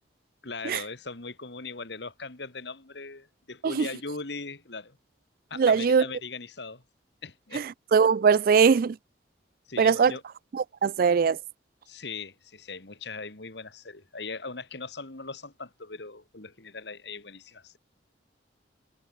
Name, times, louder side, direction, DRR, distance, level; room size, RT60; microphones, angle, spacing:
voice 1, 0.4-5.0 5.5-6.8 7.2-7.7 9.7-10.2 11.9-17.8, left 4 dB, 65° left, 2.0 m, -39 dB
voice 2, 5.6-6.0 7.5-7.6 7.9-9.0 9.8-10.1 10.5-11.4, right 6 dB, 50° right, 0.3 m, -21 dB
head